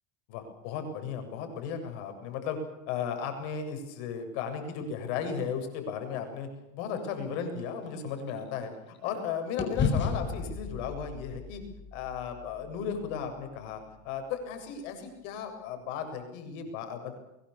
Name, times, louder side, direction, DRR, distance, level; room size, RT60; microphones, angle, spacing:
voice 1, 0.3-2.6 2.9-6.5 6.7-11.6 11.9-17.1, left 7 dB, 65° left, 6 dB, 7.8 m, -35 dB
sound 1, 6.9-9.2 9.6-13.8, left 5 dB, 30° left, 6.3 m, -35 dB
23.5 x 23.0 x 7.2 m, 0.93 s
supercardioid pair, 125°, 39 cm